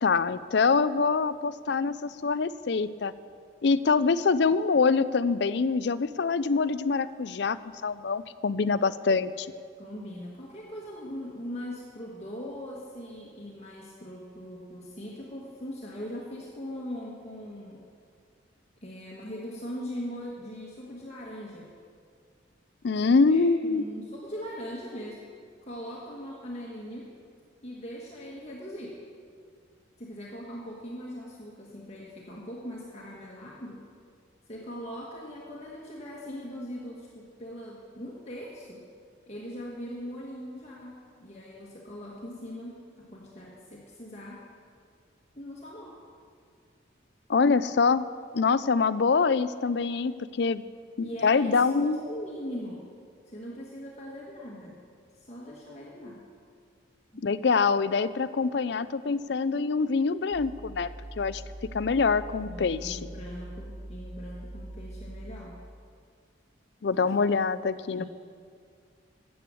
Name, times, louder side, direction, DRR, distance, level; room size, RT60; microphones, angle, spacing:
voice 1, 0.0-3.1 3.6-7.6 7.8-9.5 22.8-23.8 47.3-48.0 48.3-50.6 51.0-52.0 57.2-60.9 61.2-61.4 61.7-63.0 66.8-68.0, left 4 dB, 60° left, 15 dB, 0.4 m, -25 dB
voice 2, 9.8-17.9 18.8-21.7 23.0-25.3 25.6-27.1 27.6-29.0 30.0-33.9 34.5-38.9 39.3-44.5 45.3-46.0 51.0-52.9 53.3-54.8 55.1-56.2 57.1-57.3 62.4-65.6 66.9-67.3 67.9-68.1, equal, 35° left, -4 dB, 1.5 m, -40 dB
sound 1, 60.3-65.4, right 1 dB, 75° right, 1.1 m, -42 dB
13.5 x 8.6 x 7.6 m, 2.2 s
head